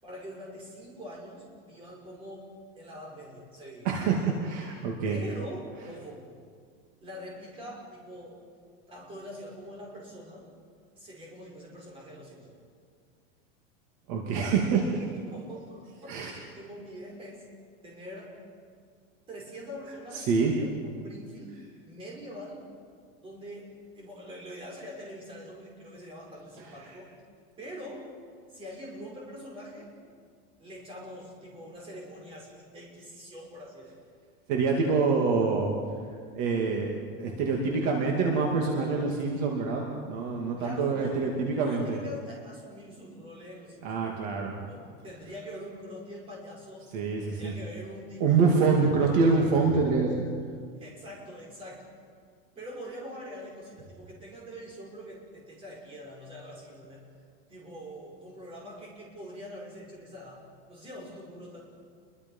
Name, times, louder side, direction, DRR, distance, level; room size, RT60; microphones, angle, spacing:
voice 1, 0.0-2.5 2.8-4.2 5.0-6.3 7.0-8.5 8.9-10.5 11.0-12.6 15.3-17.5 17.8-18.4 19.3-22.7 23.2-27.1 27.6-28.1 28.5-29.9 30.6-34.0 40.6-41.3 41.6-44.0 44.6-46.9 47.2-49.2 50.8-51.9 52.6-57.1 57.5-61.6, equal, 20° right, -2 dB, 5.3 m, -44 dB
voice 2, 3.8-5.2 14.1-15.1 16.1-16.3 20.1-20.5 26.6-27.0 34.5-35.8 36.3-42.0 43.8-44.6 46.9-47.5 48.2-50.3, right 4 dB, 45° right, 0 dB, 2.7 m, -26 dB
28.5 x 22.5 x 5.7 m, 2.1 s
supercardioid pair, 180°, 30 cm